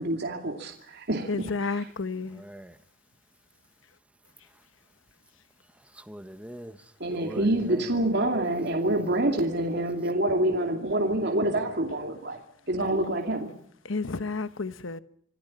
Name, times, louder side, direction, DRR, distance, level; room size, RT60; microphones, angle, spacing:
voice 1, 0.0-1.9 7.0-12.4 12.7-13.5, right 1 dB, 55° right, 2.6 m, -27 dB
voice 2, 1.3-2.4 13.8-15.0, left 4 dB, 75° left, 1.1 m, -31 dB
voice 3, 2.3-2.8 5.9-6.8 7.1-7.9, equal, 5° right, 1.1 m, -42 dB
26.5 x 16.0 x 8.7 m
head